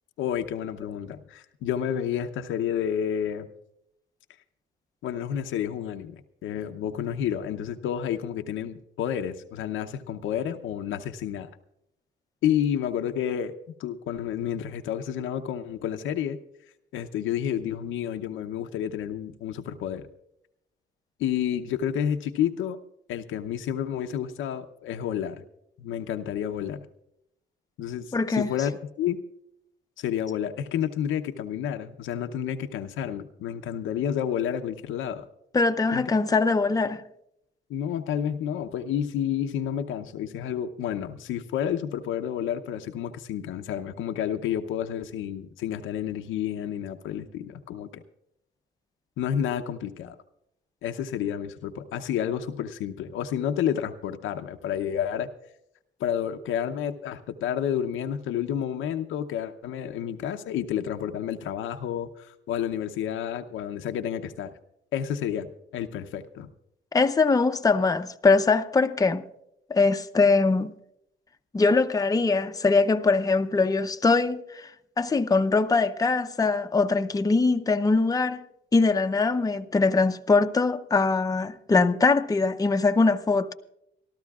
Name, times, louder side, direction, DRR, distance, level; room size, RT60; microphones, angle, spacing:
voice 1, 0.2-3.5 5.0-11.5 12.4-13.5 13.8-16.4 16.9-20.1 21.2-22.8 23.1-25.4 25.8-26.9 27.8-28.7 29.0-29.2 30.0-35.3 35.9-36.0 37.7-48.0 49.2-50.2 50.8-55.3 56.0-64.5 64.9-66.5, left 9 dB, 85° left, 0.8 m, -30 dB
voice 2, 28.1-28.5 35.5-37.0 66.9-69.2 69.7-70.7 71.5-74.7 75.0-78.4 78.7-83.5, left 3 dB, 20° left, 0.7 m, -22 dB
27.0 x 13.0 x 2.4 m
cardioid pair, 90°, 20 cm